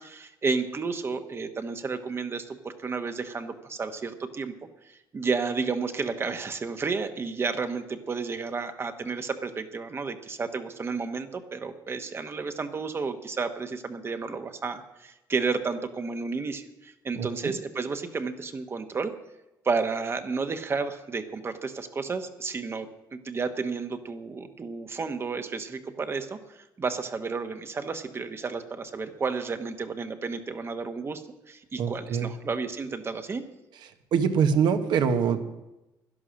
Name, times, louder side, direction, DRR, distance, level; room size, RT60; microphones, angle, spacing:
voice 1, 0.0-4.5 4.8-19.1 19.6-33.4, right 4 dB, 30° right, 8 dB, 1.1 m, -32 dB
voice 2, 17.1-17.5 31.8-32.3 34.1-35.4, right 6 dB, 70° right, 8 dB, 1.3 m, -24 dB
11.5 x 11.0 x 6.4 m, 0.98 s
cardioid pair, 110°, 8 cm